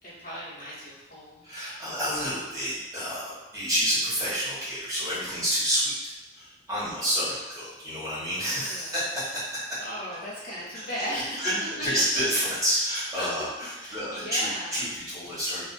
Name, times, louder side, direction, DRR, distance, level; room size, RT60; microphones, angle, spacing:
voice 1, 0.0-1.9 6.8-7.4 8.5-9.0 9.8-11.5 11.8-12.0 12.7-12.8 13.2-13.3 13.6-14.8, equal, 50° left, -8 dB, 0.8 m, -37 dB
voice 2, 1.4-9.8 10.7-10.9 11.4-11.5 11.8-15.6, equal, 20° right, -11 dB, 1.1 m, -29 dB
2.3 x 2.3 x 2.4 m, 1.0 s
head